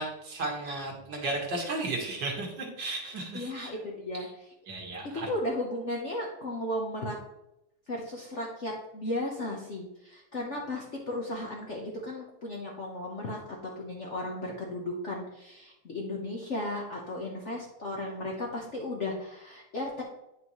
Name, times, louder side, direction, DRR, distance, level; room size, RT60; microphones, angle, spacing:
voice 1, 0.0-3.7 4.7-5.3, right 2 dB, 60° right, 0 dB, 2.1 m, -34 dB
voice 2, 3.3-4.3 5.1-7.1 7.9-20.0, left 1 dB, 45° left, -2 dB, 1.0 m, -35 dB
9.4 x 5.5 x 3.1 m, 0.87 s
omnidirectional pair, 2.3 m